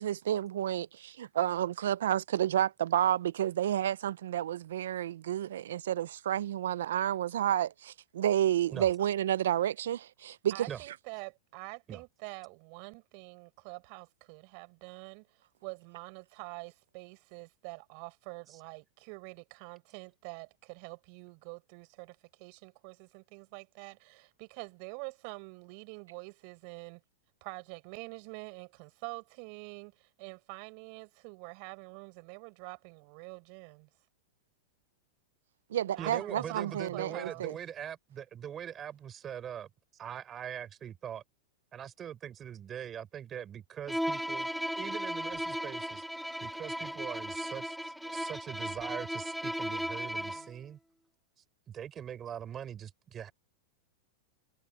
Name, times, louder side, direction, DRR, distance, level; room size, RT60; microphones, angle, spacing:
voice 1, 0.0-10.7 35.7-37.5, right 11 dB, 80° right, 0.5 m, -30 dB
voice 2, 10.5-27.0 27.4-33.9 35.9-37.4 50.1-50.5, right 35 dB, 45° right, 6.3 m, -46 dB
voice 3, 36.0-39.7 40.0-41.2 41.7-44.5 44.8-46.0 46.4-47.8 48.1-50.8 51.7-53.3, right 9 dB, 20° right, 3.8 m, -42 dB
Bowed string instrument, 43.9-50.5, equal, ahead, 0.9 m, -36 dB
supercardioid pair, 150°, 0 cm